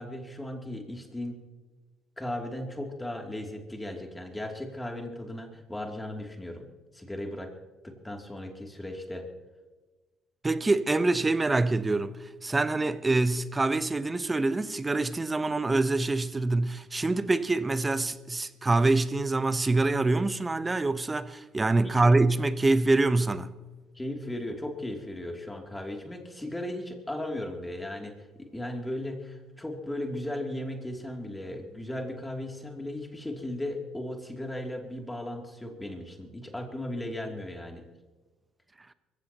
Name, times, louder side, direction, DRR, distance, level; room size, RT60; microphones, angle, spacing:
voice 1, 0.0-1.3 2.2-6.7 6.9-7.5 7.8-9.3 21.8-22.2 23.9-37.8, left 1 dB, 10° left, 2.8 m, -36 dB
voice 2, 10.4-12.2 12.4-23.5, right 2 dB, 20° right, 0.8 m, -25 dB
24.0 x 15.0 x 3.0 m
hypercardioid pair, 60°, 0 cm